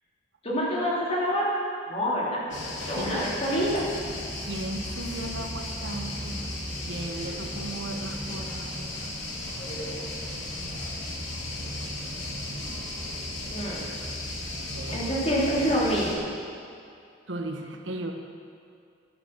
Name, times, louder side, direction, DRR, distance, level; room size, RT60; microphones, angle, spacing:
voice 1, 0.4-1.5 1.9-2.4 2.8-3.8 13.5-13.9 14.9-16.3, equal, 35° left, -6 dB, 3.3 m, -26 dB
sound 1, 2.5-16.1, left 1 dB, 75° left, 2.6 m, -35 dB
voice 2, 2.9-3.3 4.5-6.4 6.8-8.6 12.2-12.3 14.7-15.1 17.3-18.1, right 2 dB, 75° right, 4 dB, 1.2 m, -36 dB
13.0 x 9.1 x 6.1 m, 2.4 s
head